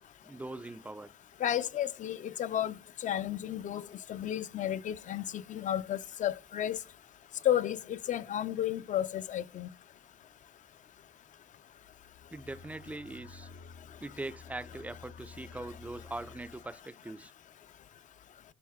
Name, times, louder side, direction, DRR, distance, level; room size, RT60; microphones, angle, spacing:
voice 1, 0.2-1.1 12.3-13.5 14.0-17.3, right 2 dB, 10° right, 0.4 m, -42 dB
voice 2, 1.4-6.8 7.4-9.7, left 11 dB, 50° left, 0.6 m, -32 dB
sound 1, 11.7-16.8, left 5 dB, 90° left, 1.6 m, -53 dB
12.5 x 5.7 x 3.6 m
cardioid pair, 110°, 17 cm